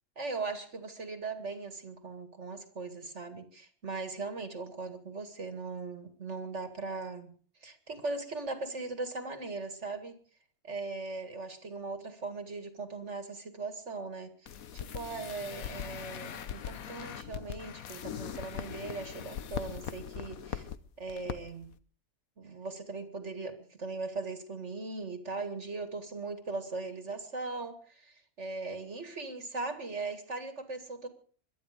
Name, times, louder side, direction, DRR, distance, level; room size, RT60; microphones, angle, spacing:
voice 1, 0.2-10.2 10.6-20.7 21.0-21.7 22.4-31.1, right 3 dB, 55° right, 8 dB, 2.2 m, -39 dB
sound 1, 14.5-20.8 21.1-21.4 21.6-21.7, left 9 dB, 75° left, 1.3 m, -40 dB
22.0 x 12.0 x 5.0 m, 0.44 s
omnidirectional pair, 1.5 m